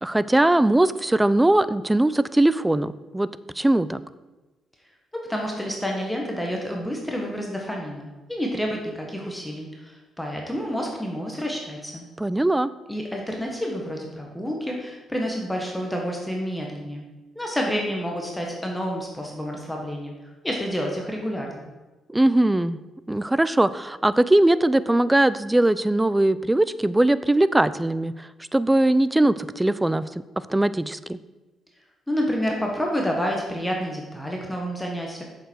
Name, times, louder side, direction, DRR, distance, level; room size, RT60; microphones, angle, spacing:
voice 1, 0.0-3.3 3.6-4.0 12.2-12.7 22.1-22.8 23.1-30.1 30.5-31.2, right 1 dB, 10° right, 16 dB, 0.4 m, -20 dB
voice 2, 5.1-12.0 12.9-17.0 17.3-20.1 20.4-21.7 32.1-35.2, equal, 5° left, 0 dB, 1.4 m, -29 dB
7.9 x 6.7 x 4.6 m, 1.2 s
cardioid pair, 90°, 0 cm